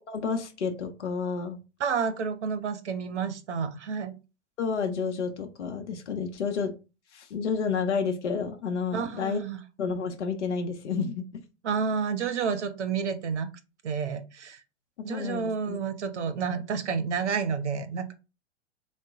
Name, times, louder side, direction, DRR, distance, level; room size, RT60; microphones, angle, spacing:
voice 1, 0.1-1.6 4.6-6.7 7.1-9.4 9.8-11.2 15.1-15.8, left 5 dB, 80° left, 5 dB, 0.7 m, -30 dB
voice 2, 1.8-4.1 8.9-9.6 11.6-13.5 13.8-14.6 15.0-18.1, right 6 dB, 80° right, 11 dB, 0.7 m, -30 dB
3.8 x 2.1 x 3.6 m, 0.30 s
figure-of-eight pair, 95°, 34 cm